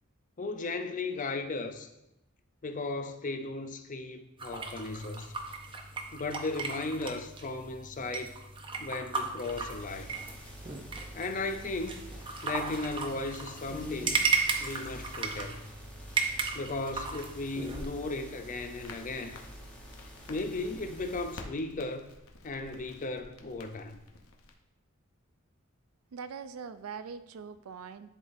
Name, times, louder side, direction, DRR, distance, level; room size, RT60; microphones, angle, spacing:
voice 1, 0.4-1.9 2.6-5.3 6.1-8.3 8.8-10.1 11.1-12.0 12.4-14.2 14.6-15.6 16.5-19.4 20.3-22.1 22.4-24.0, left 3 dB, 40° left, 8 dB, 0.5 m, -36 dB
sound 1, 4.4-17.8, right 4 dB, 25° right, 0.6 m, -35 dB
sound 2, 9.5-21.4, equal, 5° left, 1.0 m, -48 dB
Crackle, 18.8-24.5, left 2 dB, 85° left, 0.8 m, -51 dB
voice 2, 26.1-28.1, right 6 dB, 90° right, 12 dB, 0.4 m, -42 dB
11.0 x 4.0 x 2.6 m, 0.90 s
head